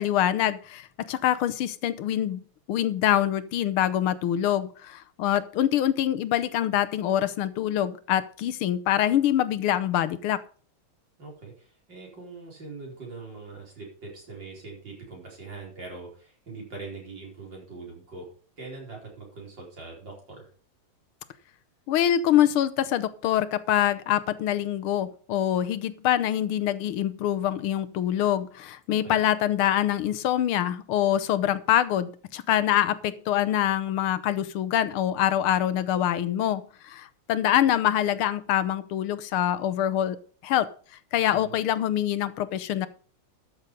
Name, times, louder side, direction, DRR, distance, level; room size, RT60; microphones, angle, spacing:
voice 1, 0.0-2.4 2.7-10.4 21.9-40.7 41.1-42.9, left 11 dB, 80° left, 14 dB, 1.7 m, -25 dB
voice 2, 11.2-20.5 28.9-29.2 41.3-41.6, right 3 dB, 55° right, -1 dB, 5.2 m, -42 dB
12.5 x 6.8 x 5.1 m, 0.42 s
omnidirectional pair, 2.3 m